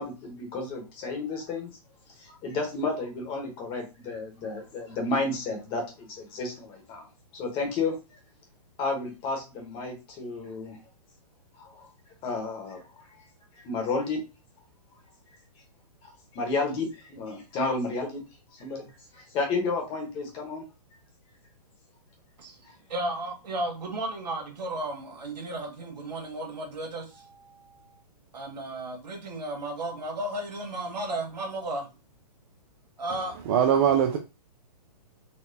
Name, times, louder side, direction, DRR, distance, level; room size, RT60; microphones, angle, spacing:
voice 1, 0.0-1.7 2.2-7.0 7.3-8.0 8.8-10.8 11.6-11.9 12.2-12.8 13.6-14.2 16.0-18.2 18.6-18.9 19.1-20.6, left 3 dB, 25° left, 1.0 m, -31 dB
voice 2, 22.4-27.8 28.3-31.9 33.0-33.3, right 1 dB, 85° right, 1.3 m, -34 dB
voice 3, 33.5-34.2, right 9 dB, 35° right, 0.4 m, -21 dB
4.0 x 2.2 x 2.7 m
hypercardioid pair, 145°, 21 cm